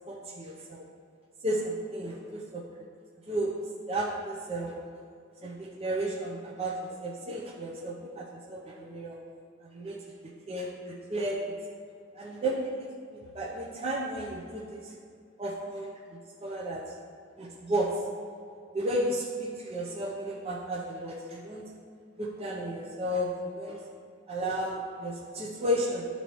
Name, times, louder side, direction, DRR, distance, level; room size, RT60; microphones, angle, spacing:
voice 1, 0.1-0.9 1.4-2.7 3.3-3.5 3.9-4.8 5.4-9.2 9.6-11.4 12.1-12.9 13.3-15.0 15.4-16.9 17.4-18.0 18.7-21.6 22.2-23.8 24.3-26.1, right 1 dB, 30° right, -4 dB, 0.6 m, -33 dB
11.5 x 4.1 x 3.0 m, 2.3 s
head